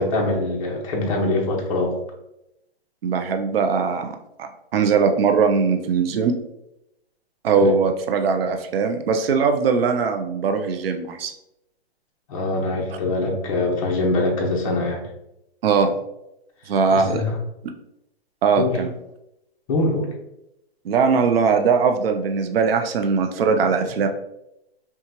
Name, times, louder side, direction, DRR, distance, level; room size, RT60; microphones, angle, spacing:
voice 1, 0.0-1.9 7.6-7.7 12.3-15.0 16.9-17.4 18.6-18.8 19.7-20.1, left 2 dB, 35° left, -1 dB, 0.9 m, -23 dB
voice 2, 3.0-6.4 7.4-11.3 12.9-13.0 15.6-15.9 16.7-17.2 18.4-18.9 20.8-24.1, right 5 dB, 65° right, 6 dB, 0.6 m, -20 dB
5.7 x 2.3 x 2.9 m, 0.86 s
hypercardioid pair, 170°, 32 cm